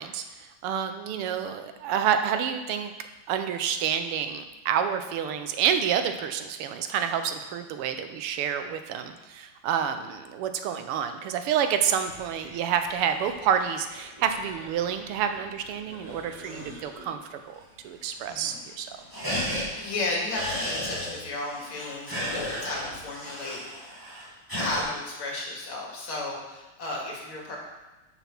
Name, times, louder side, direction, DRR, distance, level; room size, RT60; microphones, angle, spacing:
voice 1, 0.0-2.9 3.3-18.9, right 8 dB, 90° right, 8 dB, 1.7 m, -28 dB
sound 1, 11.9-17.2 17.5-17.6 17.9-18.4 18.7-24.8, equal, 10° right, 2.3 m, -36 dB
voice 2, 16.4-16.7 18.3-18.6 19.8-23.9 24.5-27.6, left 2 dB, 70° left, -3 dB, 2.7 m, -34 dB
6.9 x 6.1 x 5.9 m, 1.1 s
omnidirectional pair, 2.4 m